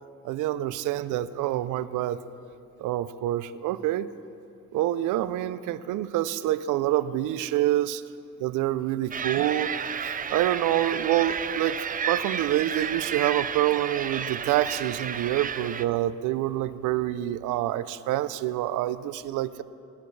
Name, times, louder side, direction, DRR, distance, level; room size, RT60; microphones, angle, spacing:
voice 1, 0.2-2.2 2.8-4.1 4.7-8.0 8.4-9.7 10.0-19.6, right 13 dB, 90° right, 15 dB, 0.5 m, -27 dB
sound 1, 9.1-15.8, right 7 dB, 30° right, 0.4 m, -32 dB
19.0 x 11.0 x 3.2 m, 2.6 s
cardioid pair, 90°, 30 cm